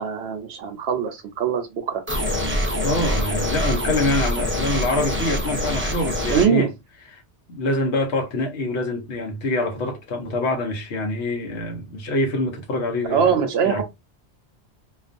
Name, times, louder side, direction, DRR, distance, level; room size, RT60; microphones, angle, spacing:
voice 1, 0.0-2.0 6.3-6.7 13.1-13.8, right 7 dB, 70° right, 0.8 m, -22 dB
sound 1, 2.1-6.5, equal, 20° right, 0.3 m, -25 dB
voice 2, 2.8-6.7 7.1-7.2 7.5-13.3 13.6-13.8, left 2 dB, 70° left, 1.0 m, -25 dB
2.4 x 2.3 x 2.5 m
omnidirectional pair, 1.2 m